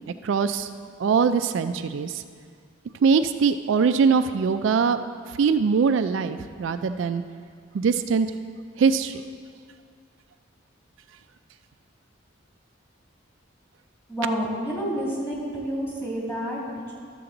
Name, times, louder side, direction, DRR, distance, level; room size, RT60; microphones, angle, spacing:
voice 1, 0.1-0.7 1.0-2.2 3.0-5.0 5.3-7.2 7.7-8.3 8.8-9.2, right 5 dB, 70° right, 9 dB, 0.3 m, -22 dB
voice 2, 14.1-16.9, equal, 15° left, -5 dB, 2.4 m, -29 dB
12.5 x 6.9 x 3.8 m, 2.1 s
head